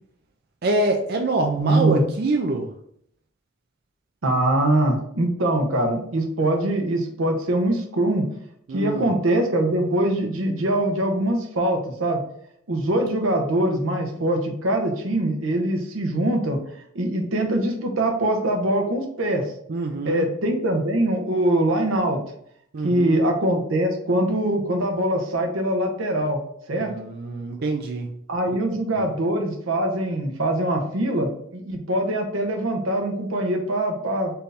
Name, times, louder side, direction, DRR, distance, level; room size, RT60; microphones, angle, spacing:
voice 1, 0.6-2.7 8.7-9.1 19.7-20.3 22.7-23.2 26.8-28.1 29.0-29.1, right 2 dB, 50° right, 2 dB, 0.4 m, -25 dB
voice 2, 1.6-2.0 4.2-8.3 8.7-12.2 12.7-16.6 16.9-19.4 20.0-22.2 22.8-26.4 26.7-26.9 28.3-34.3, right 1 dB, 85° right, 3 dB, 0.8 m, -23 dB
4.5 x 2.6 x 3.3 m, 0.68 s
head